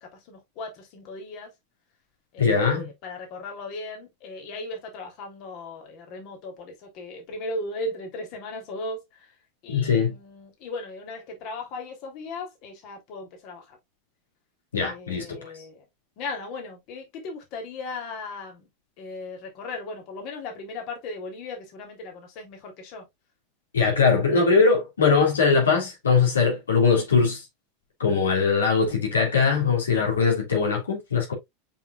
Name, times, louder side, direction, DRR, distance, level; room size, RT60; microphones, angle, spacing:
voice 1, 0.0-1.5 2.3-9.3 9.6-13.8 14.7-15.8 16.2-18.7 19.0-23.0 30.0-30.2, left 2 dB, 50° left, 3.3 m, -37 dB
voice 2, 2.4-2.9 9.7-10.1 14.7-15.4 23.7-27.4 28.0-31.3, left 5 dB, 80° left, 3.4 m, -21 dB
7.0 x 5.8 x 2.5 m
hypercardioid pair, 90°, 0 cm